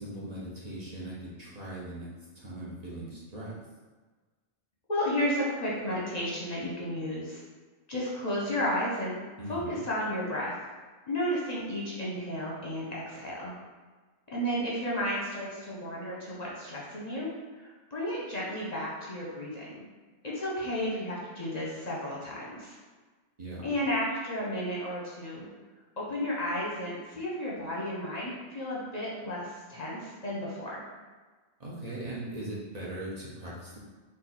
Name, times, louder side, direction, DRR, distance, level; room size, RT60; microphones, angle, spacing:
voice 1, 0.0-2.1 2.3-3.6 9.4-9.8 23.4-23.7 31.6-33.8, right 1 dB, 40° right, -6 dB, 0.9 m, -39 dB
voice 2, 4.9-7.4 7.9-9.2 9.5-10.5 11.1-13.5 14.3-17.3 17.6-19.8 20.2-22.8 23.6-25.5 26.0-30.9, equal, 40° left, -5 dB, 0.8 m, -33 dB
4.4 x 2.5 x 4.1 m, 1.3 s
omnidirectional pair, 1.1 m